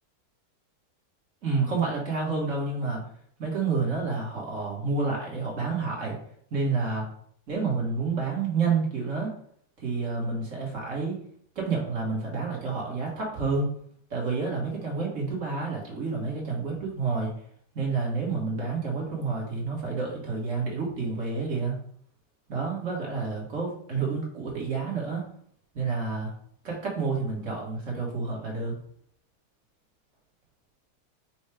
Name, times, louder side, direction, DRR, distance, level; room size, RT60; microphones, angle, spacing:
voice 1, 1.4-3.0 3.4-6.2 6.5-7.0 7.5-9.3 9.8-11.2 11.5-13.7 14.1-17.3 17.7-21.8 22.5-25.2 25.7-26.3 26.6-28.7, right 4 dB, 45° right, -2 dB, 1.5 m, -29 dB
4.4 x 2.3 x 4.7 m, 0.62 s
omnidirectional pair, 2.0 m